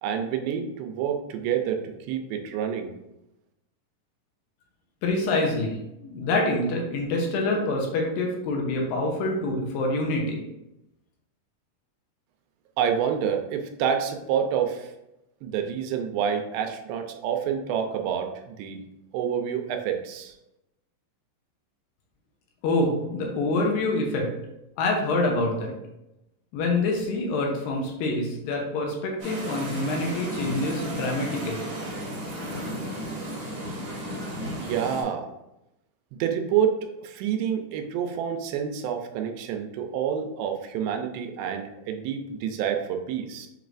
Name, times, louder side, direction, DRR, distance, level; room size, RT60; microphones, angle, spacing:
voice 1, 0.0-2.9 12.8-14.9 15.4-18.8 19.1-20.3 34.6-35.3 36.2-43.5, right 8 dB, 85° right, 5 dB, 2.4 m, -28 dB
voice 2, 5.0-10.4 22.6-24.3 24.8-25.7 26.5-31.7, left 2 dB, 85° left, 0 dB, 2.5 m, -26 dB
sound 1, 29.2-35.0, equal, 65° right, 1.2 m, -34 dB
6.6 x 3.2 x 2.5 m, 0.89 s
omnidirectional pair, 4.0 m